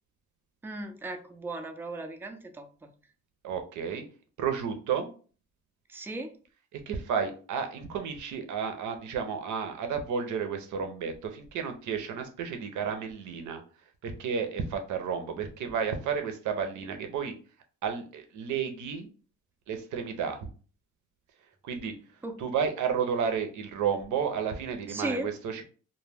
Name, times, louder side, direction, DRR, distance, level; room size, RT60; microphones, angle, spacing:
voice 1, 0.6-2.9 5.9-6.3 22.2-22.4 24.9-25.3, right 2 dB, 10° right, 6 dB, 0.3 m, -36 dB
voice 2, 3.4-4.0 4.4-5.1 6.7-13.6 14.0-17.3 17.8-19.1 19.7-20.5 21.6-21.9 22.4-25.6, right 6 dB, 75° right, 6 dB, 0.6 m, -32 dB
2.2 x 2.1 x 3.3 m, 0.40 s
cardioid pair, 90°, 30 cm